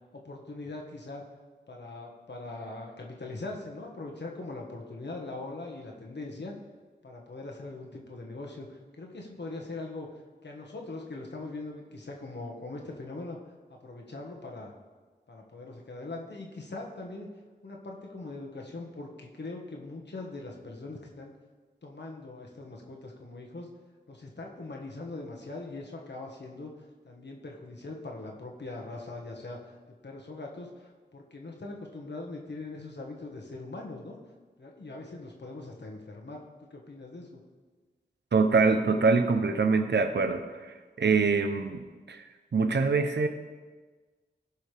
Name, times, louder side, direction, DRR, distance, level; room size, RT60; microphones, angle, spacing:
voice 1, 0.1-1.2 1.7-6.5 7.0-10.1 10.4-13.4 13.7-14.7 15.3-17.3 17.6-21.3 21.8-23.7 24.1-26.7 27.0-29.8 30.0-34.2 34.6-37.4, left 2 dB, 70° left, 0 dB, 1.5 m, -41 dB
voice 2, 38.3-41.8 42.1-43.3, right 4 dB, 70° right, 7 dB, 0.7 m, -25 dB
16.5 x 5.6 x 3.4 m, 1.4 s
wide cardioid pair, 55°, 18 cm